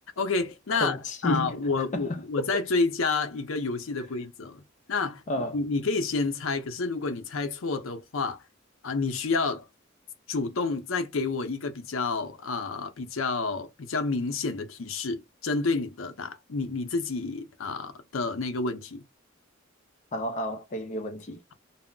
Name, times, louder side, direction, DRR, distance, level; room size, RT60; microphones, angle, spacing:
voice 1, 0.2-1.0 1.2-4.6 4.9-8.4 8.8-9.7 10.3-19.0, left 4 dB, 85° left, 0.6 m, -29 dB
voice 2, 0.7-1.6 1.9-2.6 5.3-5.6 20.1-21.4, left 1 dB, 40° left, 0.5 m, -31 dB
2.2 x 2.0 x 3.7 m
head